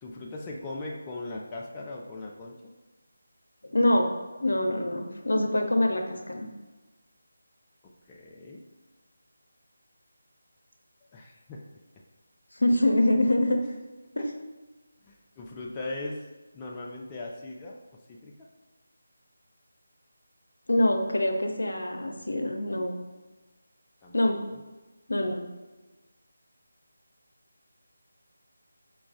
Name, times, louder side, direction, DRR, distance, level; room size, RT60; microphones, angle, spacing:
voice 1, 0.0-2.7 7.8-8.6 11.1-11.8 15.1-16.3 16.5-17.8 18.1-18.3 24.0-24.2 24.5-24.6, left 2 dB, 15° left, -3 dB, 0.3 m, -39 dB
voice 2, 3.7-4.1 4.4-6.5 12.5-13.6 14.2-14.3 20.7-23.0 24.1-24.4 25.1-25.5, left 1 dB, 75° left, 3 dB, 0.6 m, -25 dB
4.7 x 2.3 x 3.6 m, 1.2 s
figure-of-eight pair, 160°, 0 cm